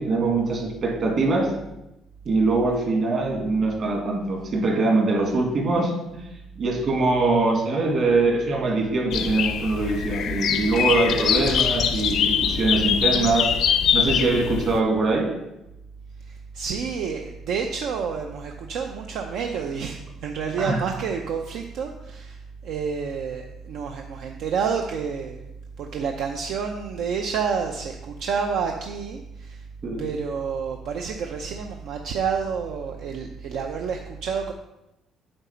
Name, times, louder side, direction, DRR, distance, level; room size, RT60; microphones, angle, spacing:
voice 1, 0.0-1.5 2.3-6.3 6.6-13.5 13.9-15.3 20.6-20.8 29.8-30.1, right 3 dB, 40° right, 0 dB, 2.0 m, -23 dB
sound 1, 9.1-14.8, left 8 dB, 55° left, 0.6 m, -23 dB
voice 2, 16.2-29.6 30.0-34.5, right 6 dB, 65° right, 3 dB, 0.6 m, -29 dB
8.8 x 4.1 x 5.8 m, 0.89 s
cardioid pair, 155°, 0 cm